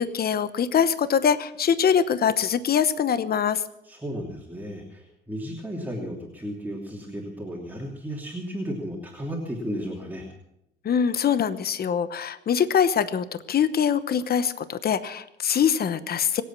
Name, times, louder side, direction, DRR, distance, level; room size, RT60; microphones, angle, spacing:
voice 1, 0.0-3.6 10.8-16.4, left 7 dB, 50° left, 13 dB, 1.0 m, -23 dB
voice 2, 3.8-10.3, equal, 10° right, -2 dB, 3.0 m, -34 dB
25.0 x 8.4 x 5.9 m, 0.84 s
cardioid pair, 90°, 20 cm